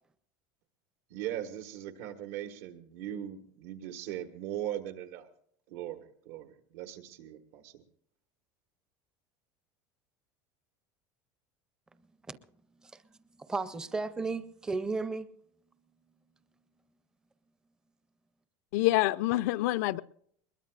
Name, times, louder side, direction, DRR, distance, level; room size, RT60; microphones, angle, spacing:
voice 1, 1.1-5.3 5.7-7.8, right 11 dB, 80° right, 1.6 m, -39 dB
voice 2, 13.4-15.3, right 3 dB, 10° right, 0.5 m, -34 dB
voice 3, 18.7-20.0, left 17 dB, 80° left, 0.5 m, -26 dB
21.5 x 21.0 x 2.5 m
cardioid pair, 175°, 9 cm